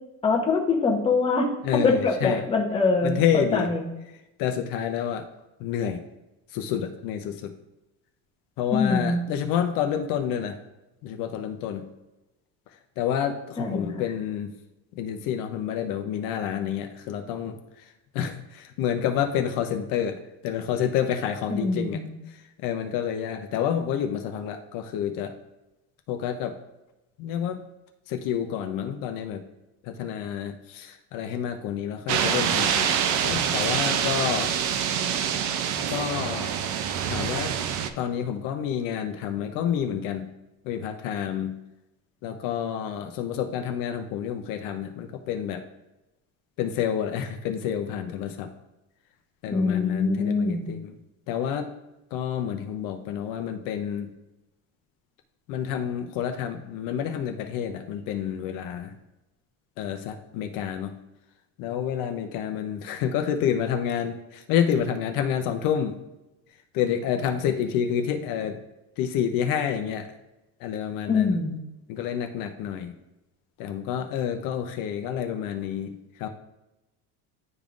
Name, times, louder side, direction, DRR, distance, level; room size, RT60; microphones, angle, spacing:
voice 1, 0.2-1.5 1.8-3.8 8.7-9.2 13.6-13.9 21.5-22.1 49.5-50.7 71.1-71.6, left 4 dB, 15° left, -1 dB, 0.8 m, -24 dB
voice 2, 1.6-2.4 3.0-3.7 4.1-5.3 5.6-6.0 6.5-7.5 8.6-10.6 11.0-11.9 13.0-14.5 14.9-22.0 22.3-25.3 26.1-26.6 27.2-27.6 28.1-29.4 29.8-32.9 33.2-34.5 35.7-36.5 37.0-37.6 38.0-40.3 40.6-41.6 42.2-45.6 46.6-48.5 49.4-51.0 51.3-51.7 52.1-54.1 55.5-58.9 59.8-61.0 61.6-65.9 66.7-68.6 69.0-70.1 70.6-71.4 71.9-73.0 73.6-76.3, left 9 dB, 60° left, 5 dB, 0.6 m, -29 dB
sound 1, 32.1-37.9, right 8 dB, 50° right, 0.5 m, -26 dB
10.5 x 3.6 x 2.5 m, 0.97 s
cardioid pair, 160°, 37 cm